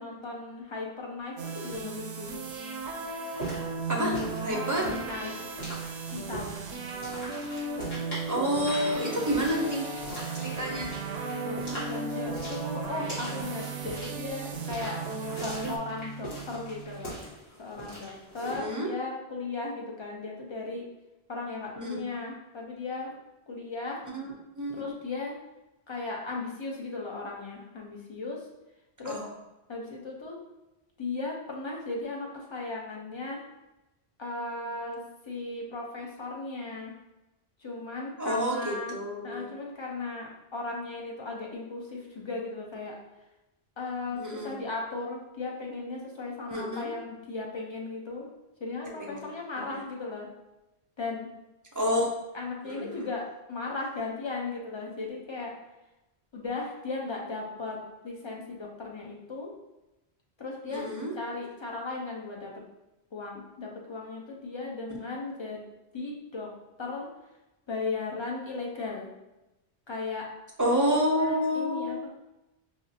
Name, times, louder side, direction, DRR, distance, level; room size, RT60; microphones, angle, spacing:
voice 1, 0.0-2.3 4.5-5.3 6.1-6.6 9.0-9.3 11.2-15.0 15.4-17.2 17.6-20.8 21.3-23.1 23.5-24.0 24.7-25.3 25.9-28.4 29.0-29.2 29.7-30.4 31.0-33.4 34.2-36.9 37.6-38.9 39.2-43.0 43.8-48.3 48.6-50.3 51.0-51.3 52.3-55.5 56.3-59.5 60.4-60.9 61.1-62.5 63.1-65.6 65.9-66.5 66.8-67.1 67.7-69.1 69.9-70.3 71.2-72.1, left 3 dB, 35° left, -2 dB, 0.6 m, -36 dB
sound 1, 1.4-15.8, right 3 dB, 85° right, 0.8 m, -36 dB
sound 2, 3.3-18.6, equal, 65° left, 1.7 m, -42 dB
voice 2, 3.9-4.9 8.3-10.1 10.3-10.9 18.4-18.9 21.8-22.0 24.1-24.8 29.0-29.3 38.2-39.5 44.1-44.5 46.5-46.8 49.1-49.2 49.6-49.7 51.7-52.1 52.6-53.1 60.7-61.1 70.6-72.0, equal, 25° right, -2 dB, 0.5 m, -29 dB
Guitar, 8.6-17.2, right 6 dB, 90° left, 1.2 m, -41 dB
4.9 x 2.0 x 2.7 m, 0.96 s
omnidirectional pair, 1.1 m